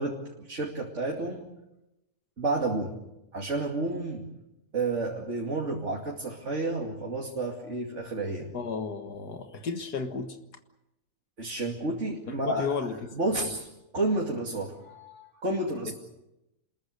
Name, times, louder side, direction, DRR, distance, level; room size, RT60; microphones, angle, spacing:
voice 1, 0.0-1.5 2.4-3.0 3.3-4.2 4.7-8.5 11.4-12.7 13.1-13.7 13.9-15.9, right 2 dB, 50° right, -1 dB, 2.9 m, -31 dB
voice 2, 8.5-10.4 12.3-13.2 13.4-13.5 15.9-16.0, left 5 dB, 85° left, 6 dB, 2.2 m, -33 dB
28.0 x 21.0 x 6.7 m, 0.90 s
omnidirectional pair, 1.7 m